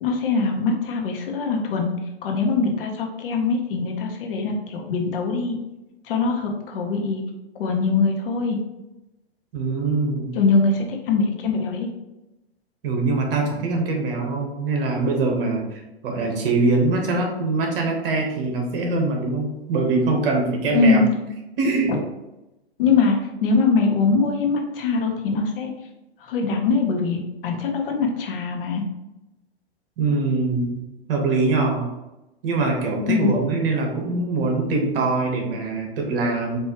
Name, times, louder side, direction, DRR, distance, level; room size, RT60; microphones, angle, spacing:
voice 1, 0.0-1.9 2.2-5.5 6.1-7.2 7.6-8.6 10.3-11.9 20.7-21.1 21.9-22.0 22.8-25.7 26.2-28.8 33.1-33.4, left 4 dB, 60° left, 2 dB, 1.0 m, -22 dB
voice 2, 9.5-10.3 12.8-21.0 21.6-21.9 30.0-30.8 31.1-31.9 32.4-36.6, right 3 dB, 60° right, 2 dB, 1.2 m, -23 dB
4.5 x 2.7 x 3.0 m, 0.97 s
hypercardioid pair, 115°, 32 cm